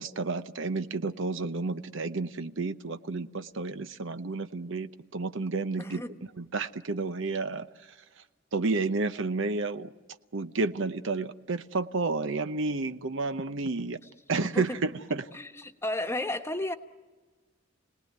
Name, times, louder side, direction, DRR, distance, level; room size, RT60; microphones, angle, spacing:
voice 1, 0.0-6.0 6.4-7.7 8.5-9.9 10.3-14.0 14.3-15.3, right 3 dB, 65° right, 11 dB, 0.8 m, -31 dB
voice 2, 5.8-6.2 14.5-14.8 15.3-16.7, left 1 dB, 15° left, 6 dB, 1.3 m, -33 dB
29.5 x 19.5 x 9.4 m, 1.4 s
head